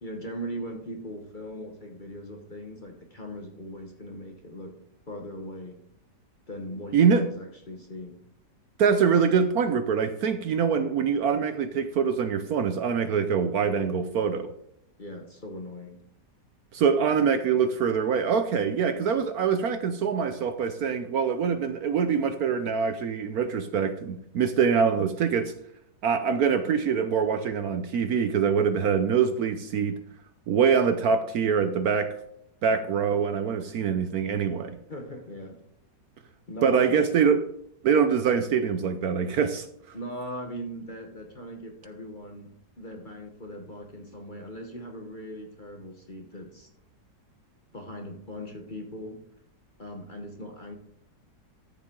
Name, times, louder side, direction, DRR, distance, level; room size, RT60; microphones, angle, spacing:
voice 1, 0.0-4.8 5.1-5.8 6.5-8.2 15.0-16.0 34.9-35.6 36.5-37.1 39.9-46.7 47.7-49.2 49.8-50.8, equal, 35° left, 3 dB, 1.0 m, -39 dB
voice 2, 6.9-7.2 8.8-14.5 16.7-25.5 26.0-30.0 30.5-32.1 32.6-34.8 36.6-37.4 37.8-39.7, right 6 dB, 65° right, 9 dB, 1.1 m, -24 dB
13.5 x 7.2 x 3.8 m, 0.74 s
omnidirectional pair, 1.9 m